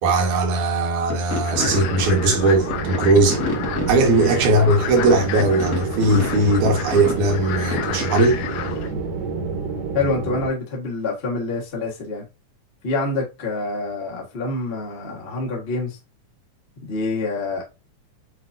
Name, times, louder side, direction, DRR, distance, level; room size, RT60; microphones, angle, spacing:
voice 1, 0.0-3.4 3.9-8.4, right 2 dB, 75° right, 2.4 m, -19 dB
sound 1, 1.1-8.9, left 4 dB, 40° left, 1.3 m, -32 dB
sound 2, 1.4-8.9, left 10 dB, 85° left, 2.2 m, -32 dB
sound 3, 1.5-10.5, right 4 dB, 60° right, 2.0 m, -29 dB
voice 2, 9.9-12.2 12.8-16.0 16.8-17.6, left 3 dB, 60° left, 0.6 m, -26 dB
7.7 x 2.6 x 2.6 m
omnidirectional pair, 3.7 m